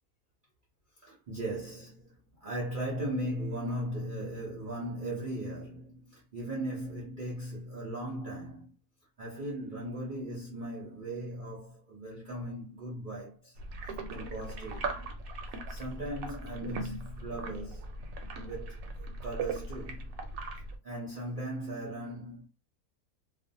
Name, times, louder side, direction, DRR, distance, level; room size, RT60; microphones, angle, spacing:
voice 1, 1.0-8.7 9.2-13.6 13.9-15.0 15.7-17.9 18.4-20.1 20.6-22.5, right 1 dB, 50° right, 0.6 m, -38 dB
sound 1, 13.6-20.8, right 3 dB, 70° right, 0.9 m, -39 dB
2.5 x 2.1 x 2.6 m
omnidirectional pair, 1.6 m